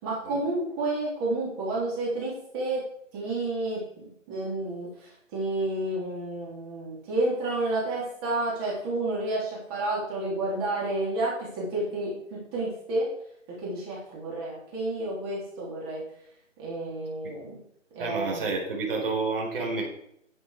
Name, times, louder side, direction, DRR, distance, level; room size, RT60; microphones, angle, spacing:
voice 1, 0.0-2.8 3.1-13.1 13.6-16.0 16.6-17.6 17.9-18.5, right 2 dB, 20° right, -4 dB, 3.3 m, -30 dB
voice 2, 18.0-19.8, right 3 dB, 45° right, -2 dB, 4.6 m, -29 dB
11.0 x 7.9 x 4.9 m, 0.70 s
hypercardioid pair, 160°, 38 cm